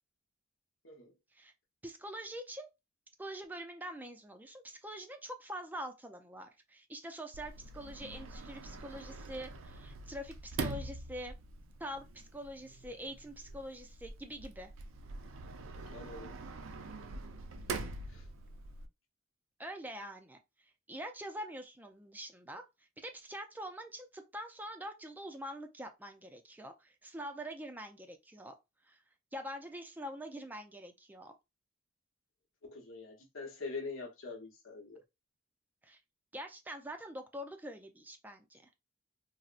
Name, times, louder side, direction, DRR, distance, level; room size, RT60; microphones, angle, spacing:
voice 1, 1.8-2.7 3.2-11.3 11.8-14.7 19.6-20.4 20.9-22.6 23.0-28.5 28.8-29.0 29.3-31.3 35.8-36.0 36.3-38.7, equal, 10° right, 0.4 m, -45 dB
Sliding door, 7.3-18.9, right 3 dB, 90° right, 0.5 m, -44 dB
voice 2, 15.9-16.3 18.1-18.2 32.6-35.0, left 3 dB, 80° left, 0.9 m, -44 dB
4.0 x 2.0 x 2.4 m
head